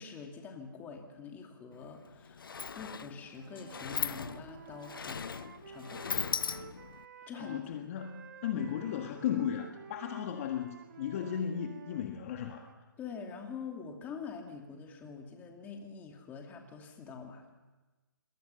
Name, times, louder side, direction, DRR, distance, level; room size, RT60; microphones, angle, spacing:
voice 1, 0.0-5.3 5.7-6.1 7.3-7.6 7.9-8.1 8.5-8.6 13.0-17.5, left 5 dB, 15° left, 3 dB, 2.6 m, -45 dB
Sliding door, 1.7-1.8 2.1-7.0, left 6 dB, 75° left, 0.9 m, -38 dB
Wind instrument woodwind instrument, 3.3-7.7 8.0-12.8, right 6 dB, 60° right, 1.7 m, -52 dB
voice 2, 7.4-12.7, left 9 dB, 40° left, 5 dB, 1.5 m, -35 dB
27.0 x 21.5 x 5.7 m, 1.2 s
hypercardioid pair, 150°, 12 cm